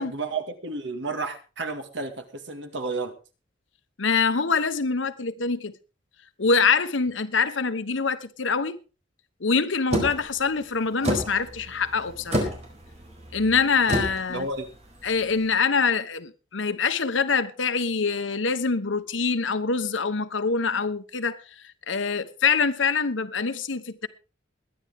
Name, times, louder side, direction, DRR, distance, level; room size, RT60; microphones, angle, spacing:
voice 1, 0.0-3.1 14.3-14.7, right 3 dB, 70° right, 2.1 m, -32 dB
voice 2, 4.0-5.7 6.4-8.8 9.4-12.5 13.3-14.5 15.0-21.4 21.9-24.1, left 5 dB, 85° left, 1.1 m, -25 dB
sound 1, 9.9-15.5, equal, 35° right, 4.4 m, -31 dB
21.5 x 10.0 x 3.6 m
head